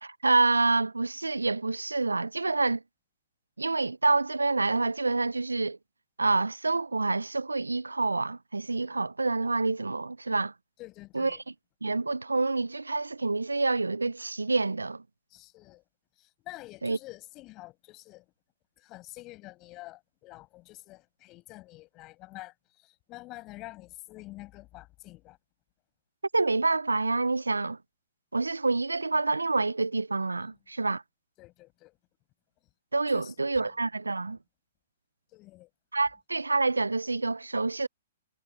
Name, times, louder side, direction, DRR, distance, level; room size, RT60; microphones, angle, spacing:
voice 1, 0.0-2.8 3.6-5.8 6.2-10.5 11.1-11.3 11.8-15.0 16.8-17.0 26.3-27.8 28.3-31.0 32.9-34.4 35.9-37.9, right 3 dB, 85° right, 0.5 m, -27 dB
voice 2, 10.8-11.4 15.3-15.8 16.2-18.3 18.8-25.4 31.4-32.0 33.1-33.3 33.6-33.7 35.3-35.7, left 19 dB, 30° left, 7.3 m, -47 dB
figure-of-eight pair, 120°, 0 cm